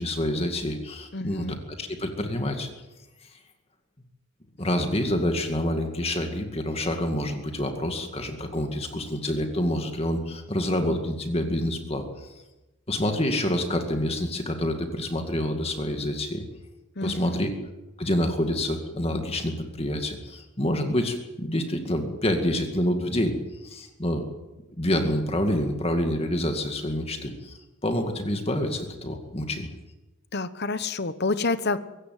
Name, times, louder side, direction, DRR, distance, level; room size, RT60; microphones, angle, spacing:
voice 1, 0.0-2.7 4.6-12.3 12.9-16.5 17.0-17.5 18.0-24.3 24.8-29.7, left 1 dB, 25° left, 5 dB, 2.1 m, -27 dB
voice 2, 1.1-1.6 17.0-17.5 30.3-31.8, left 3 dB, 45° left, 13 dB, 1.1 m, -28 dB
24.0 x 14.5 x 9.4 m, 1.1 s
head